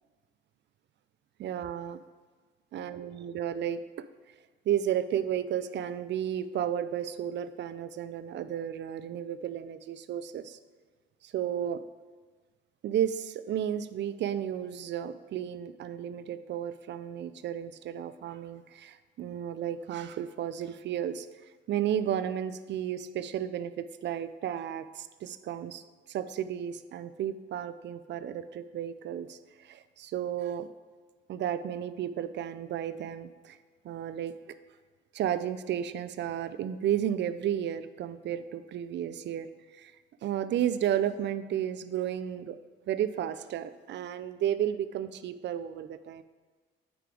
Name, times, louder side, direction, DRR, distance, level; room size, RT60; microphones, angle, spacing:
voice 1, 1.4-2.0 2.7-3.8 4.7-10.6 11.2-11.8 12.8-21.3 21.7-25.8 26.1-30.7 31.3-33.6 33.8-34.3 35.1-39.9 40.2-42.6 42.9-46.2, right 10 dB, 65° right, 13 dB, 0.5 m, -33 dB
9.1 x 4.9 x 3.9 m, 1.4 s
cardioid pair, 90°, 20 cm